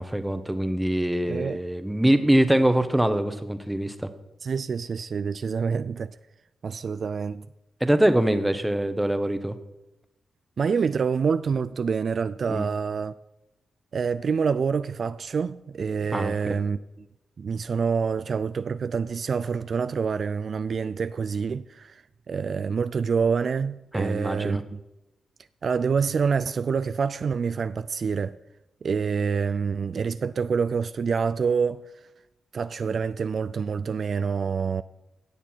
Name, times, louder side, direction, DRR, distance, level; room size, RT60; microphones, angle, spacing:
voice 1, 0.0-3.9 7.8-9.5 12.5-12.6 16.1-16.3 23.9-24.6, right 1 dB, 10° right, 1.2 m, -23 dB
voice 2, 1.3-1.6 4.4-6.2 6.6-7.5 10.6-13.1 13.9-17.1 17.4-24.8 25.6-28.4 28.8-31.8 32.5-34.8, right 5 dB, 60° right, 0.3 m, -27 dB
17.0 x 7.0 x 4.5 m
cardioid pair, 65°, 0 cm